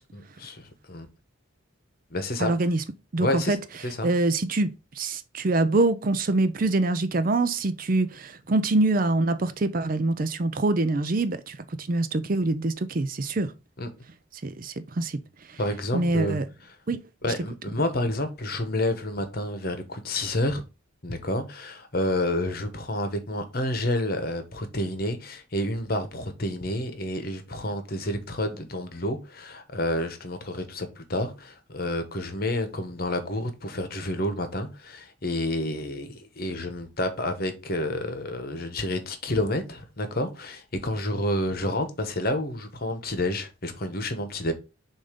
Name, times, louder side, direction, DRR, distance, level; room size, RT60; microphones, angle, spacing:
voice 1, 0.1-1.1 2.1-2.5 3.2-3.6 3.8-4.1 13.8-13.9 15.6-16.4 17.2-20.6 21.0-44.5, left 1 dB, 45° left, 1.1 m, -29 dB
voice 2, 2.4-2.8 3.1-3.6 4.0-13.5 14.4-15.2 15.5-15.6 15.9-16.4 16.9-17.0, right 2 dB, 40° right, 0.5 m, -25 dB
7.0 x 2.7 x 5.0 m
head